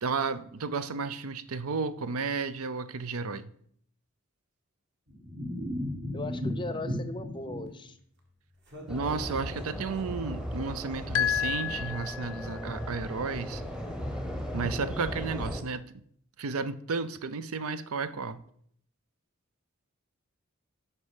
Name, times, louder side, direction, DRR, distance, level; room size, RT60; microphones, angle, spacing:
voice 1, 0.0-3.5 8.9-13.6 14.5-15.9 16.4-18.4, right 4 dB, 85° right, 0.6 m, -33 dB
sound 1, 5.1-7.7 8.7-10.5 11.5-11.8, left 1 dB, 50° right, 1.9 m, -37 dB
voice 2, 6.1-8.0, left 2 dB, 20° left, 0.6 m, -38 dB
sound 2, 8.9-15.6, equal, 5° right, 0.8 m, -37 dB
sound 3, 11.1-12.7, left 10 dB, 80° left, 0.5 m, -30 dB
9.7 x 6.0 x 5.0 m
head